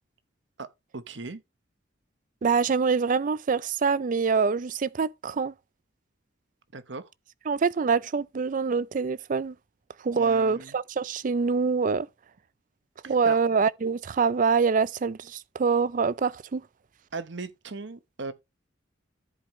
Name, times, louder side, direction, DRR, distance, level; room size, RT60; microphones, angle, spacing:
voice 1, 0.9-1.4 6.7-7.1 10.1-10.8 13.0-13.4 17.1-18.3, right 3 dB, 65° right, 1.0 m, -38 dB
voice 2, 2.4-5.5 7.5-9.5 10.0-12.1 13.1-16.6, right 5 dB, 45° right, 0.4 m, -25 dB
14.0 x 5.0 x 3.1 m
head